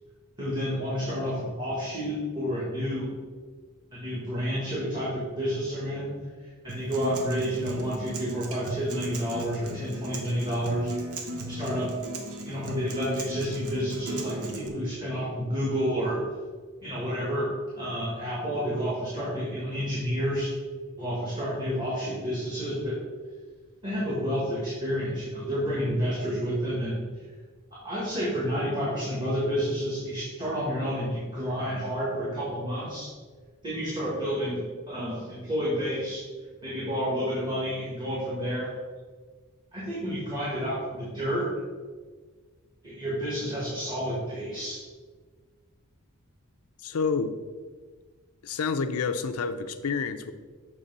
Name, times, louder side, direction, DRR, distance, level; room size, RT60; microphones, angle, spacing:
voice 1, 0.4-3.2 3.9-10.9 11.5-12.0 12.4-16.2 16.8-20.5 21.0-23.0 23.8-27.3 27.7-33.1 33.6-36.2 36.6-38.7 39.7-41.6 42.8-44.8, equal, 20° right, -8 dB, 1.5 m, -30 dB
Acoustic guitar, 6.7-14.7, equal, 85° right, 0.9 m, -36 dB
voice 2, 46.8-47.3 48.4-50.3, left 5 dB, 85° left, 10 dB, 0.5 m, -28 dB
6.7 x 3.3 x 5.3 m, 1.5 s
head